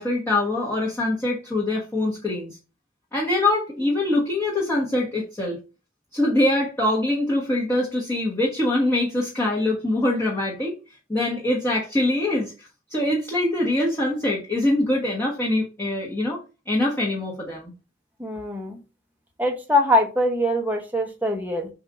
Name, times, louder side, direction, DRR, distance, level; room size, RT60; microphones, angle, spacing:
voice 1, 0.0-2.6 3.1-5.6 6.1-10.7 11.1-16.4 16.7-17.7, left 1 dB, 15° left, -3 dB, 1.3 m, -23 dB
voice 2, 18.2-18.8 19.4-21.7, left 1 dB, 10° right, 2 dB, 1.0 m, -23 dB
7.3 x 2.7 x 4.9 m, 0.31 s
head